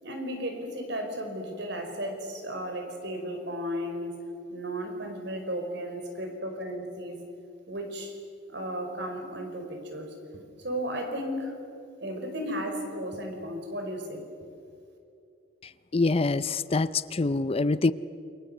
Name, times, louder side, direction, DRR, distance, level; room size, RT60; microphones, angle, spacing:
voice 1, 0.0-4.2 4.5-7.2 7.7-8.2 8.5-11.6 12.0-14.2, equal, 65° right, 4 dB, 5.0 m, -34 dB
voice 2, 15.9-17.9, left 3 dB, 30° left, 15 dB, 0.5 m, -25 dB
29.0 x 23.5 x 7.9 m, 2.6 s
head